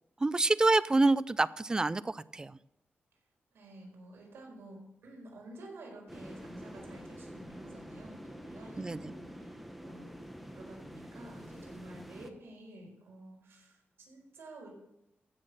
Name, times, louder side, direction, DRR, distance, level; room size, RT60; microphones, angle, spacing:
voice 1, 0.2-2.6 8.8-9.0, right 2 dB, 20° right, 18 dB, 0.3 m, -27 dB
voice 2, 3.5-10.2 10.5-14.7, right 1 dB, 85° right, 0 dB, 4.4 m, -51 dB
sound 1, 6.1-12.3, equal, ahead, 1.0 m, -47 dB
15.0 x 6.5 x 6.6 m, 0.85 s
wide cardioid pair, 145°, 4 cm